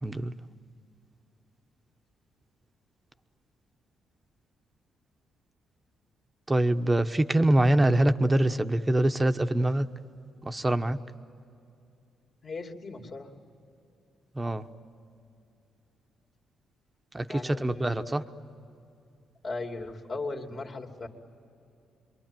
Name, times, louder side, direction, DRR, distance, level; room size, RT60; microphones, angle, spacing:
voice 1, 0.0-0.3 6.5-9.9 10.4-11.0 14.3-14.7 17.1-18.2, right 1 dB, 15° right, 8 dB, 1.0 m, -24 dB
voice 2, 12.4-13.3 17.3-18.2 19.4-21.1, left 3 dB, 45° left, 1 dB, 2.7 m, -37 dB
27.0 x 23.5 x 9.1 m, 2.6 s
cardioid pair, 90°, 0 cm